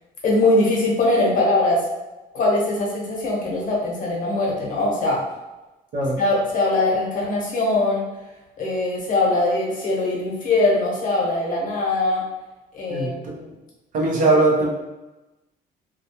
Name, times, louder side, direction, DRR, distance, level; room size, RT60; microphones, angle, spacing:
voice 1, 0.2-1.8 2.3-5.2 6.2-8.0 8.6-12.2 12.7-13.4 14.2-14.3, left 2 dB, 50° left, -3 dB, 0.9 m, -21 dB
voice 2, 12.9-13.3 13.9-14.7, right 2 dB, 50° right, -2 dB, 0.7 m, -20 dB
2.3 x 2.2 x 2.8 m, 1.1 s
cardioid pair, 110°, 17 cm